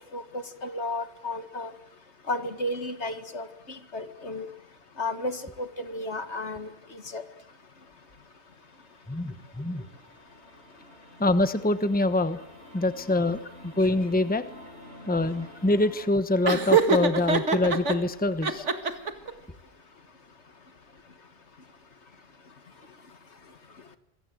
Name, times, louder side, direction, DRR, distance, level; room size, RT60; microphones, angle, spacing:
voice 1, 0.1-1.7 2.3-4.5 5.0-7.2, left 2 dB, 70° left, 9 dB, 2.2 m, -33 dB
sound 1, 7.8-16.1, equal, 65° right, 7.4 m, -50 dB
voice 2, 9.1-9.8 11.2-12.4 12.7-14.4 15.1-18.6, left 2 dB, 10° left, 11 dB, 1.1 m, -25 dB
Laughter, 16.5-18.0 18.4-19.3, right 5 dB, 80° right, 2.3 m, -23 dB
27.0 x 23.0 x 7.9 m, 0.89 s
omnidirectional pair, 1.2 m